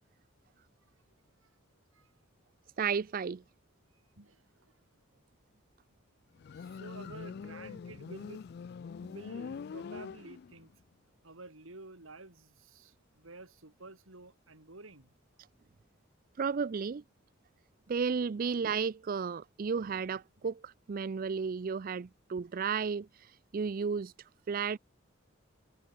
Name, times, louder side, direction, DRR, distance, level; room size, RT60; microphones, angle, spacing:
voice 1, 2.8-3.4 16.4-17.0 17.9-24.8, right 6 dB, 45° right, 0.4 m, -33 dB
voice 2, 4.2-4.8 6.5-8.4 9.0-10.7 11.2-15.1, right 2 dB, 80° right, 3.3 m, -51 dB
Motorcycle, 6.4-10.7, left 6 dB, 50° left, 0.3 m, -44 dB
head